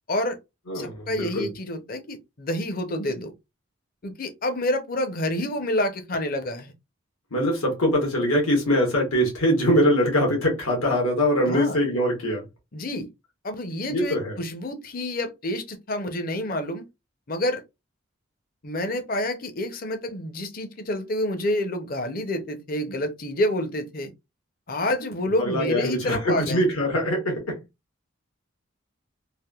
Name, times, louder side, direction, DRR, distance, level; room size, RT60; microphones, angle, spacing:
voice 1, 0.1-0.4 0.7-3.3 4.0-6.7 11.5-11.8 12.7-13.1 13.4-16.8 17.3-17.6 18.6-24.1 24.7-26.6, left 1 dB, 40° left, 0.6 m, -28 dB
voice 2, 0.7-1.5 7.3-12.4 13.9-14.3 25.4-27.6, equal, 90° left, 1.3 m, -23 dB
3.4 x 2.5 x 2.3 m
head